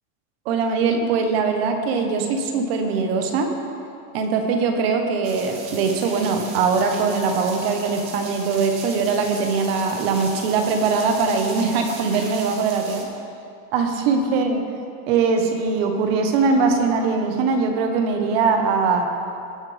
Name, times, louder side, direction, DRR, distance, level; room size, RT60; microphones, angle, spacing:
voice 1, 0.4-3.5 4.1-13.1 13.7-14.6 15.1-19.1, right 4 dB, 45° right, 4 dB, 1.2 m, -21 dB
Rain Storm, 5.2-13.0, right 4 dB, 15° right, 0.5 m, -37 dB
18.0 x 7.3 x 3.4 m, 2.5 s
supercardioid pair, 175°, 43 cm